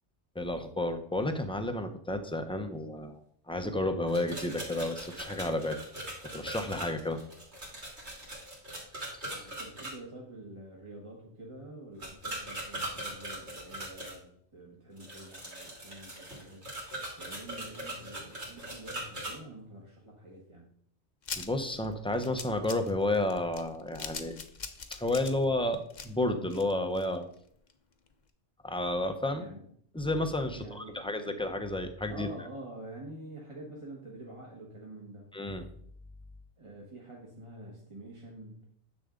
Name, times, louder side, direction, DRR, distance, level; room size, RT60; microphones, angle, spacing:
voice 1, 0.3-3.2 3.5-5.8 6.3-7.2 9.1-9.5 21.4-24.4 24.9-27.3 28.6-29.5 29.9-32.3 35.3-35.6, left 1 dB, 5° left, 7 dB, 0.7 m, -31 dB
sound 1, 4.1-9.9 12.0-14.2 15.0-19.3, right 1 dB, 75° right, 3.3 m, -40 dB
voice 2, 9.3-16.6 17.2-20.7 29.3-29.6 30.5-31.4 32.1-35.3 36.6-38.6, right 1 dB, 30° right, -2 dB, 1.4 m, -47 dB
sound 2, 21.2-27.3 27.7-27.8 28.1-28.2, left 5 dB, 45° left, 0.9 m, -42 dB
10.5 x 6.9 x 3.8 m, 0.65 s
omnidirectional pair, 1.1 m